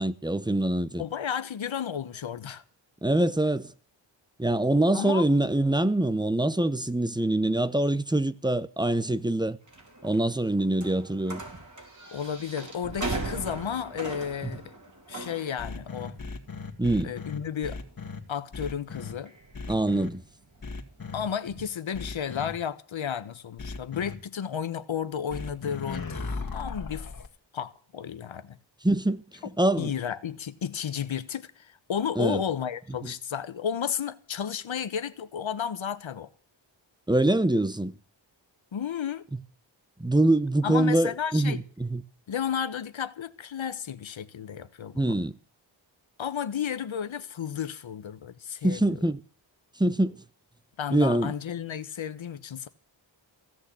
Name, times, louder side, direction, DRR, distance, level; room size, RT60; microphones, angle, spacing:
voice 1, 0.0-1.0 3.0-3.7 4.4-9.6 10.0-11.4 14.4-14.5 16.8-17.1 19.7-20.2 28.8-29.2 29.6-29.9 32.2-32.4 33.0-33.1 37.1-38.0 39.3-39.4 40.0-42.0 44.9-45.3 48.6-49.2 49.8-50.1 50.9-51.3, right 1 dB, 10° right, 0.8 m, -24 dB
voice 2, 1.0-2.6 4.9-5.2 12.1-14.7 15.1-16.2 17.0-17.8 18.3-19.3 21.1-27.1 27.5-28.6 29.8-36.3 38.7-39.2 40.6-41.6 42.3-45.2 46.2-48.9 50.8-52.7, left 8 dB, 80° left, 1.2 m, -33 dB
sound 1, 9.7-21.7, right 2 dB, 40° right, 4.2 m, -40 dB
sound 2, 15.6-18.2 18.5-19.1 19.5-20.1 20.6-21.2 21.9-22.5 23.6-24.1 25.3-27.3, left 4 dB, 45° left, 2.2 m, -37 dB
16.0 x 6.6 x 9.9 m
wide cardioid pair, 100°, 46 cm